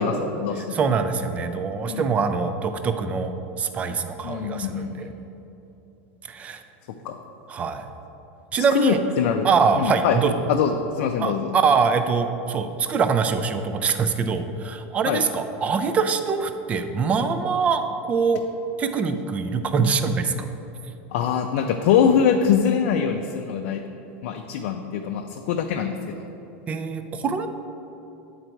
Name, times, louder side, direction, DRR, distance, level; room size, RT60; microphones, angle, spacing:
voice 1, 0.0-0.8 1.9-2.0 4.2-5.1 7.0-7.2 8.6-9.5 9.8-10.2 10.5-11.6 15.1-15.2 21.1-23.8 24.2-26.2, left 7 dB, 65° left, 3 dB, 0.4 m, -23 dB
voice 2, 0.7-4.9 6.3-6.6 7.5-7.9 8.5-9.0 9.4-10.3 11.2-18.4 18.8-20.5 26.7-27.5, right 5 dB, 20° right, 9 dB, 0.3 m, -23 dB
8.9 x 4.0 x 4.5 m, 3.0 s
supercardioid pair, 165°, 7 cm